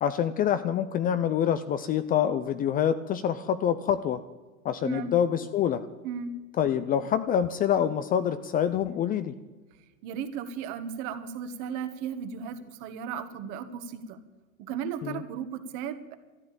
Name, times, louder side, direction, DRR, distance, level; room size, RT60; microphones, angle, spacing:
voice 1, 0.0-4.2 4.6-5.9 6.6-9.3 15.0-15.2, left 9 dB, 20° left, 12 dB, 0.5 m, -26 dB
voice 2, 4.8-5.1 6.0-6.3 10.0-14.2 14.6-16.2, right 7 dB, 45° right, 10 dB, 1.6 m, -35 dB
13.5 x 10.5 x 8.8 m, 1.3 s
hypercardioid pair, 120°, 41 cm